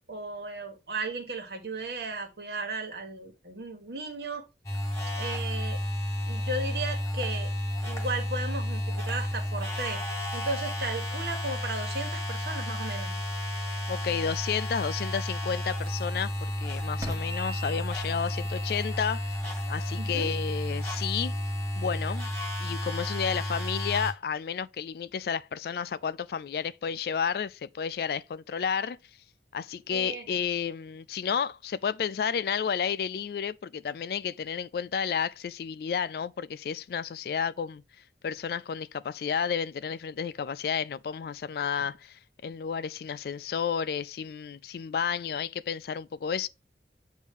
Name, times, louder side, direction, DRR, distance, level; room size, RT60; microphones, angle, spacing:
voice 1, 0.1-4.4 5.1-5.8 6.3-7.5 7.8-13.2 20.0-20.3 29.9-30.3, right 2 dB, 65° right, 1.6 m, -35 dB
sound 1, 4.6-24.1, left 1 dB, 15° left, 1.6 m, -32 dB
sound 2, 11.0-21.9, right 1 dB, 20° right, 1.3 m, -51 dB
voice 2, 13.9-19.4 19.7-21.4 21.8-22.3 22.6-29.0 29.5-37.8 38.2-46.5, left 7 dB, 60° left, 0.3 m, -31 dB
8.1 x 2.7 x 5.4 m
head